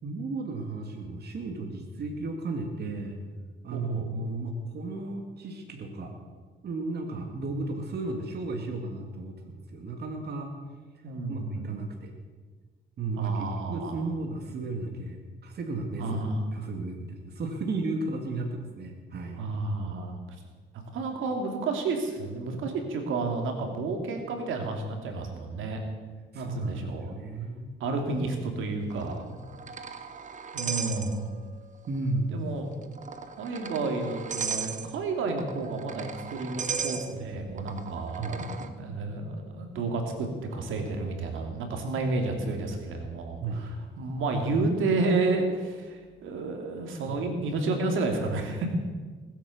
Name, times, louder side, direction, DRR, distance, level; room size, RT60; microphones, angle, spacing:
voice 1, 0.0-3.2 3.6-6.2 6.6-10.5 10.9-12.1 13.0-16.2 16.5-19.5 26.3-27.8 31.9-32.4 38.2-38.4 43.4-43.6 47.1-47.2, right 2 dB, 55° right, 3 dB, 2.1 m, -34 dB
voice 2, 3.7-4.0 11.0-11.7 13.2-14.0 16.0-16.4 19.4-20.2 20.9-25.8 26.3-27.2 27.8-29.3 30.5-31.3 32.3-32.7 33.4-48.7, right 3 dB, 80° right, 4 dB, 2.7 m, -31 dB
sound 1, 28.9-31.6 31.8-32.0 32.8-38.7, right 6 dB, 40° right, 1.2 m, -37 dB
20.0 x 8.6 x 7.2 m, 1.4 s
cardioid pair, 90°, 20 cm